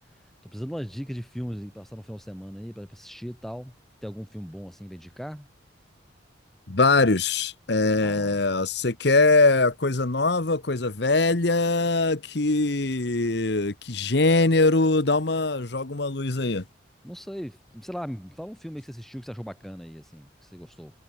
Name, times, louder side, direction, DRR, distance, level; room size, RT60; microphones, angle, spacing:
voice 1, 0.4-3.7 4.0-5.5 8.0-8.4 17.0-20.9, equal, ahead, 4.7 m, -38 dB
voice 2, 6.7-16.6, left 3 dB, 60° left, 1.3 m, -22 dB
head